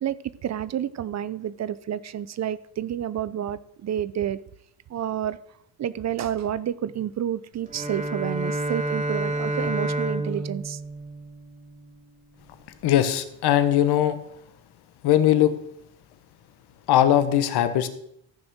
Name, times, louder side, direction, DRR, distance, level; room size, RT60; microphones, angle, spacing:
voice 1, 0.0-4.4 4.9-5.4 5.8-10.8, right 10 dB, 40° right, 0.6 m, -29 dB
Bowed string instrument, 7.6-12.0, right 2 dB, 20° right, 3.9 m, -29 dB
voice 2, 12.8-14.2 15.0-15.5 16.9-17.9, left 11 dB, 60° left, 1.3 m, -20 dB
14.5 x 6.1 x 6.2 m
hypercardioid pair, 65°, 43 cm